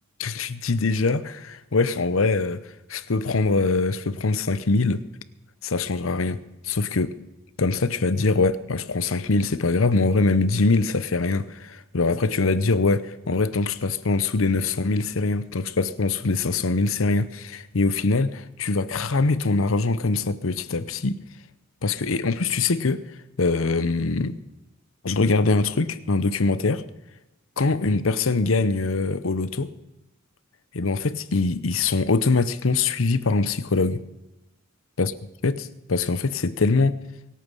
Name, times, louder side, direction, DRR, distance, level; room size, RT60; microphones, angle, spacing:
voice 1, 0.2-2.6 2.9-5.0 5.6-7.2 7.6-21.2 21.8-23.1 23.4-24.4 25.0-26.8 27.6-29.7 30.7-34.0 35.0-35.1 35.4-37.0, left 3 dB, 85° left, 0.8 m, -23 dB
24.0 x 8.7 x 5.5 m
head